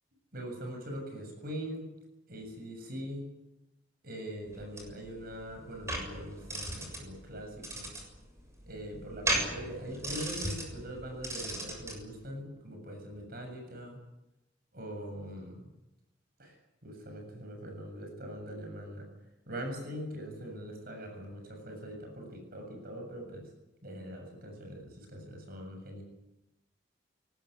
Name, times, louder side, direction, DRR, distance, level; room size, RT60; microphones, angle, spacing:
voice 1, 0.3-1.9 2.3-3.3 4.0-7.9 8.7-14.0 14.7-15.7 16.4-16.6 16.8-19.1 19.5-23.5 23.8-26.0, equal, 55° right, 3 dB, 7.4 m, -42 dB
sound 1, 4.5-12.0, right 1 dB, 15° right, 7.0 m, -37 dB
22.5 x 19.5 x 9.7 m, 0.91 s
head